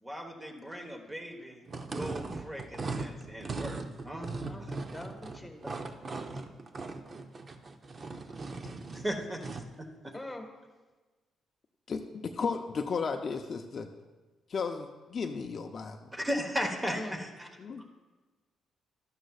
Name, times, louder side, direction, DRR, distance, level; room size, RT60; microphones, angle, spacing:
voice 1, 0.0-1.6 1.8-4.3 8.9-10.1 16.1-17.5, equal, 15° right, 3 dB, 1.2 m, -37 dB
sound 1, 1.7-9.8, right 3 dB, 40° right, 0.6 m, -39 dB
voice 2, 4.5-5.6 8.3-8.4 10.1-10.5 16.9-17.2 17.7-17.9, left 1 dB, 10° left, 3 dB, 1.5 m, -43 dB
voice 3, 11.9-13.9 14.5-16.1 17.6-17.8, left 5 dB, 45° left, 4 dB, 0.6 m, -34 dB
12.5 x 11.5 x 2.4 m, 1.2 s
cardioid pair, 90°, 0 cm